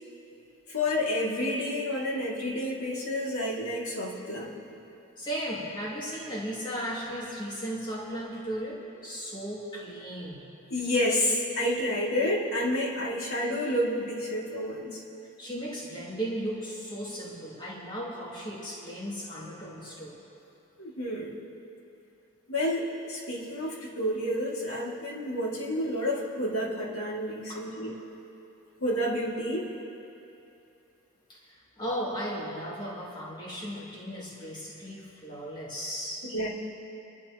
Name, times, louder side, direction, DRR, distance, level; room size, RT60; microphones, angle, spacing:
voice 1, 0.7-4.6 10.7-15.0 20.8-21.4 22.5-28.0 28.8-29.7 36.2-36.5, left 1 dB, 80° left, -4 dB, 2.4 m, -30 dB
voice 2, 5.2-10.5 15.4-20.2 27.5-27.6 31.3-36.3, equal, 20° left, -6 dB, 2.4 m, -36 dB
28.5 x 11.5 x 3.0 m, 2.8 s
head